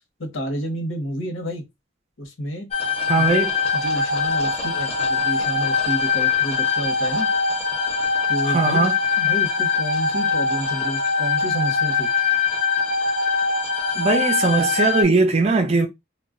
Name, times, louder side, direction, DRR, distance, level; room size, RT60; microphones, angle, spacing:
voice 1, 0.2-1.6 2.2-2.7 3.2-3.5 3.7-7.3 8.3-8.9 9.2-12.1, equal, 70° left, 0.9 m, -30 dB
sound 1, 2.7-15.0, left 5 dB, 30° left, 0.7 m, -22 dB
voice 2, 3.1-3.5 8.4-8.9 14.0-15.9, right 3 dB, 30° right, 0.4 m, -19 dB
2.2 x 2.1 x 3.5 m
head